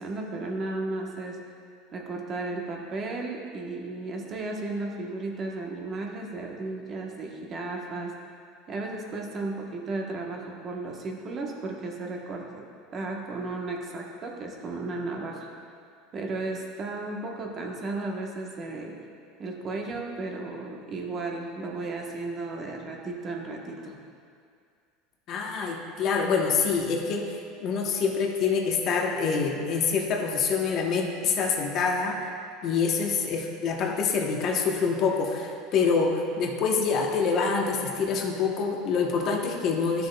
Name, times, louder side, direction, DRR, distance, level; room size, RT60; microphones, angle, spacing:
voice 1, 0.0-1.4 1.9-8.1 8.7-12.6 12.9-15.5 16.1-18.9 19.4-24.0, right 2 dB, 35° right, 0 dB, 1.0 m, -34 dB
voice 2, 25.3-32.2 32.6-40.1, left 5 dB, 45° left, 1 dB, 0.9 m, -26 dB
12.0 x 6.6 x 2.2 m, 2.3 s
supercardioid pair, 125°, 0 cm